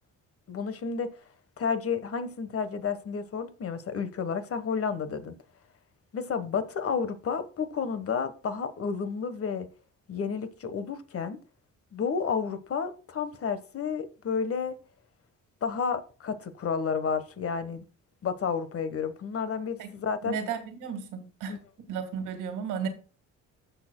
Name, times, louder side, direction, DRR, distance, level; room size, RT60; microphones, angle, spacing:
voice 1, 0.5-1.1 1.6-5.3 6.1-9.7 10.1-11.4 11.9-14.7 15.6-17.8 18.2-20.4 21.5-21.6, left 6 dB, 50° left, 1.3 m, -31 dB
voice 2, 20.2-21.6 21.9-22.9, right 7 dB, 90° right, 1.8 m, -34 dB
15.0 x 6.7 x 2.2 m
cardioid pair, 90°, 30 cm